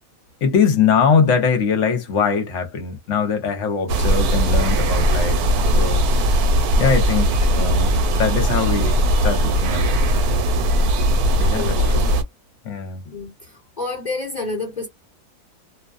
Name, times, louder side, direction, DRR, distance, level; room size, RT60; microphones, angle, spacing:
voice 1, 0.4-6.0 6.8-7.3 7.6-10.0 11.4-12.1 12.6-13.0, left 6 dB, 60° left, 0.9 m, -22 dB
sound 1, 3.9-12.2, equal, 75° right, 1.1 m, -18 dB
voice 2, 13.8-14.9, left 3 dB, 30° left, 1.2 m, -28 dB
2.6 x 2.3 x 2.3 m
omnidirectional pair, 1.7 m